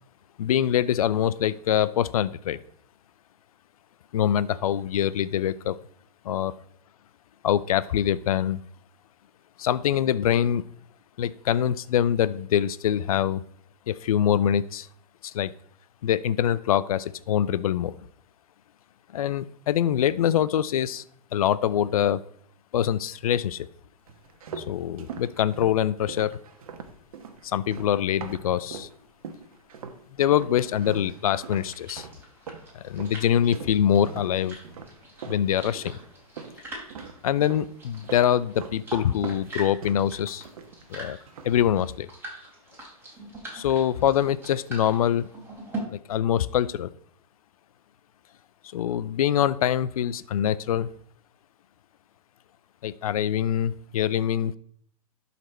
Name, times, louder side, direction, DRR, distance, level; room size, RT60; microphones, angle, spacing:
voice 1, 0.4-2.6 4.1-5.8 6.2-6.5 7.4-8.6 9.6-10.6 11.2-13.4 13.9-14.9 15.2-15.5 16.0-18.0 19.1-21.0 21.3-22.2 22.7-23.7 24.6-26.4 27.4-28.9 30.2-32.1 32.7-34.6 35.3-35.9 37.2-40.4 40.9-41.2 41.4-42.1 43.5-45.3 45.9-46.9 48.7-50.9 52.8-54.5, left 10 dB, 70° left, 18 dB, 0.5 m, -24 dB
sound 1, 24.1-28.9 29.2-30.0 30.3-36.6 36.9-37.7 38.0-38.8 39.1-41.0 41.3-41.6, right 6 dB, 65° right, 1.2 m, -41 dB
sound 2, 30.5-45.8, right 2 dB, 10° right, 3.4 m, -43 dB
12.0 x 4.3 x 4.3 m, 0.63 s
hypercardioid pair, 110°, 19 cm